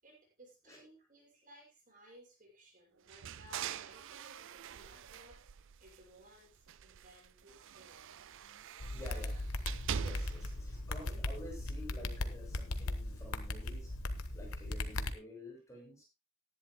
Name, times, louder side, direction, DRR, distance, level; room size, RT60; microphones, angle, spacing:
voice 1, 0.0-5.4 5.8-8.1 9.0-9.2, right 1 dB, 40° right, -2 dB, 6.4 m, -60 dB
sound 1, 3.1-6.3 6.6-10.6, right 7 dB, 60° right, 0.5 m, -44 dB
sound 2, 8.8-15.1, left 2 dB, 75° left, 1.1 m, -38 dB
voice 2, 8.9-9.4 9.9-13.9 14.3-16.0, equal, 15° left, -2 dB, 6.4 m, -50 dB
18.5 x 11.0 x 2.2 m, 0.27 s
head